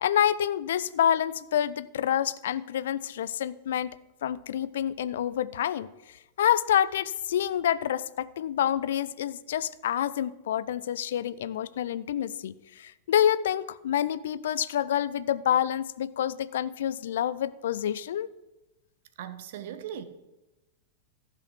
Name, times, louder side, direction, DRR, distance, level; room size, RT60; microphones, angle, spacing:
voice 1, 0.0-4.0 4.2-5.9 6.4-18.3, left 10 dB, 65° left, 0.4 m, -27 dB
voice 2, 19.2-20.0, right 9 dB, 60° right, 1.0 m, -38 dB
14.0 x 6.1 x 5.7 m
figure-of-eight pair, 90°, 0 cm